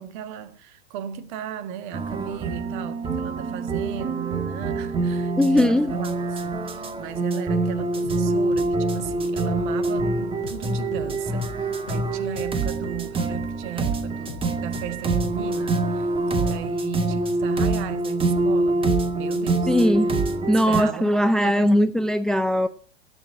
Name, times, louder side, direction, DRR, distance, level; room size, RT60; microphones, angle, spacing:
voice 1, 0.0-19.7 20.7-21.7, right 10 dB, 50° right, 1.6 m, -36 dB
sound 1, 1.9-20.8, right 2 dB, 15° right, 1.7 m, -25 dB
voice 2, 5.4-5.9 19.7-20.2 20.5-22.7, equal, ahead, 0.6 m, -20 dB
sound 2, 8.0-15.7, left 8 dB, 60° left, 1.4 m, -41 dB
12.5 x 8.4 x 7.7 m
figure-of-eight pair, 100°, 32 cm